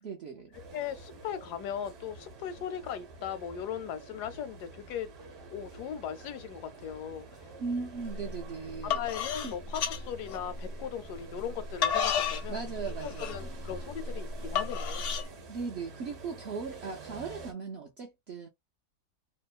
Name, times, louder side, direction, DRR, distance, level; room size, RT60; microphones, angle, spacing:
voice 1, 0.0-0.5 7.6-9.0 9.4-9.5 12.5-13.6 15.5-18.5, right 5 dB, 65° right, 0.6 m, -38 dB
sound 1, 0.5-17.5, right 3 dB, 50° right, 1.0 m, -48 dB
voice 2, 0.7-5.1 5.5-7.5 8.8-12.6 13.0-15.1, left 9 dB, 85° left, 1.2 m, -38 dB
sound 2, 8.1-8.3 8.7-10.8 11.4-15.3, left 7 dB, 70° left, 0.7 m, -31 dB
2.9 x 2.0 x 2.4 m
omnidirectional pair, 1.7 m